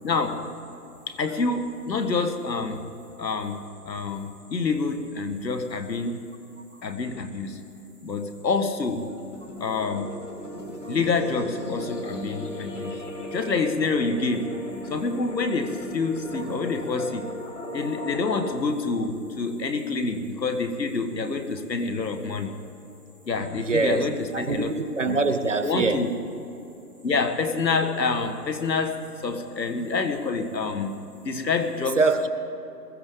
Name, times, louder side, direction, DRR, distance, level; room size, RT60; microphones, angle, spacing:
voice 1, 0.0-0.4 1.1-2.9 3.2-6.2 6.8-7.6 8.0-9.1 9.6-10.1 10.9-13.0 13.3-14.6 14.9-17.3 17.7-22.5 23.3-24.7 25.1-25.2 25.6-26.1 27.0-30.9 31.2-32.0, left 4 dB, 85° left, 7 dB, 1.9 m, -27 dB
sound 1, 9.0-18.6, left 1 dB, 45° left, 2.3 m, -36 dB
voice 2, 23.7-24.1 24.3-26.0 32.0-32.3, right 3 dB, 45° right, 9 dB, 0.9 m, -24 dB
22.0 x 14.0 x 3.9 m, 2.9 s
hypercardioid pair, 180°, 50 cm